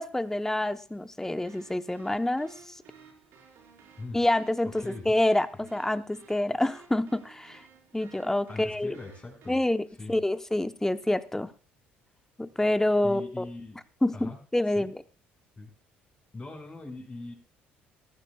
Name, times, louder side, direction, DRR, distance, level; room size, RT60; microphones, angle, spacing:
voice 1, 0.0-2.8 4.1-7.6 7.9-9.0 9.5-11.5 12.4-13.5 14.0-14.9, left 1 dB, 10° left, 13 dB, 0.9 m, -27 dB
sound 1, 1.3-9.5, right 6 dB, 55° right, 4.8 m, -56 dB
voice 2, 8.5-9.6 10.0-10.1 13.0-13.8 14.1-14.4 14.8-14.9 15.6-15.7 16.3-17.3, left 2 dB, 25° left, 3 dB, 5.6 m, -41 dB
18.5 x 14.5 x 2.3 m, 0.37 s
figure-of-eight pair, 55°, 5 cm